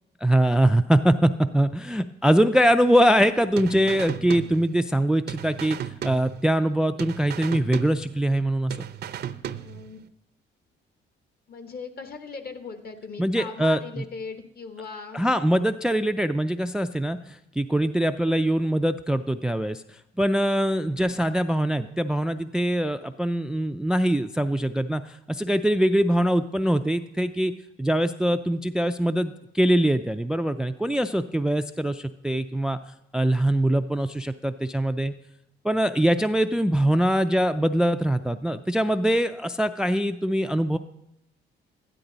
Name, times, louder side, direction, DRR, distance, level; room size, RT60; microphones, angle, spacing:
voice 1, 0.2-8.8 13.2-14.0 15.1-19.8 20.2-27.5 27.8-32.8 33.1-35.1 35.6-40.8, right 1 dB, 5° right, 10 dB, 0.3 m, -23 dB
sound 1, 3.6-5.0 5.3-6.7 7.0-8.4 8.7-10.0, right 10 dB, 55° right, 0.5 m, -36 dB
voice 2, 9.6-10.0 11.5-15.2, left 5 dB, 50° left, 7 dB, 1.2 m, -38 dB
12.5 x 10.0 x 3.9 m, 0.84 s
cardioid pair, 90°, 20 cm